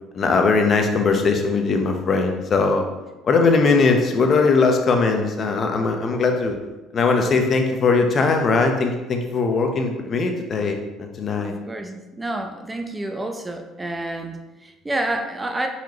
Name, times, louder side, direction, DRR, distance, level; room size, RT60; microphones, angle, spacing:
voice 1, 0.1-2.8 3.2-6.6 6.9-11.5, left 4 dB, 45° left, 4 dB, 0.7 m, -20 dB
voice 2, 11.4-15.7, right 1 dB, 15° right, 4 dB, 0.6 m, -29 dB
4.4 x 4.2 x 2.9 m, 1.1 s
supercardioid pair, 75°, 0 cm